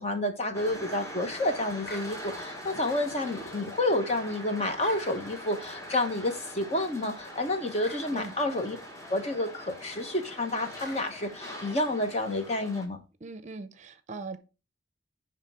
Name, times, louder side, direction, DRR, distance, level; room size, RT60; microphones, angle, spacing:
voice 1, 0.0-8.8 9.1-13.0, left 1 dB, 35° left, 1.1 m, -29 dB
sound 1, 0.5-12.9, equal, 15° left, 1.4 m, -43 dB
sound 2, 1.8-2.1 4.8-5.1 7.8-8.1 10.8-11.1, equal, 55° left, 1.8 m, -44 dB
voice 2, 13.2-14.4, right 3 dB, 40° right, 0.6 m, -40 dB
10.5 x 3.5 x 4.8 m
head